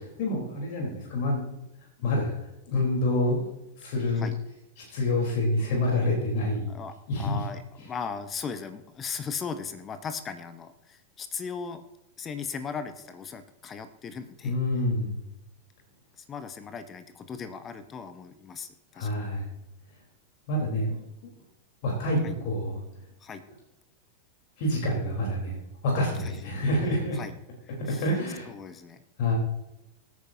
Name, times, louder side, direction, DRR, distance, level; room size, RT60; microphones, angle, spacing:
voice 1, 0.2-1.4 2.0-2.4 2.7-3.5 3.8-4.3 4.9-6.7 7.1-7.4 14.4-15.1 18.9-19.5 20.5-21.3 21.8-22.8 24.6-25.6 25.8-27.2 27.9-28.5 29.2-29.3, left 1 dB, 50° left, -2 dB, 3.8 m, -27 dB
voice 2, 6.7-11.8 12.2-14.6 16.2-19.3 22.2-22.3 23.2-23.4 26.2-26.4 27.1-27.3 27.6-28.1 28.5-29.0, left 6 dB, 25° left, 11 dB, 1.0 m, -38 dB
23.0 x 9.6 x 2.8 m, 0.86 s
figure-of-eight pair, 90°, 0 cm